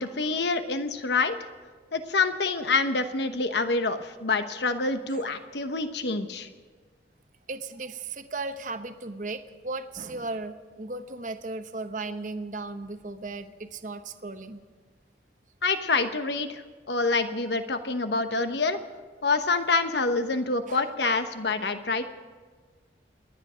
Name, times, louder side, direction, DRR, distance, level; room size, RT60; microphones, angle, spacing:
voice 1, 0.0-1.4 1.9-6.5 15.6-18.8 19.2-22.0, left 3 dB, 75° left, 9 dB, 1.1 m, -27 dB
voice 2, 7.5-14.6 20.7-20.9, right 3 dB, 45° right, 9 dB, 0.9 m, -36 dB
27.5 x 10.0 x 5.1 m, 1.5 s
head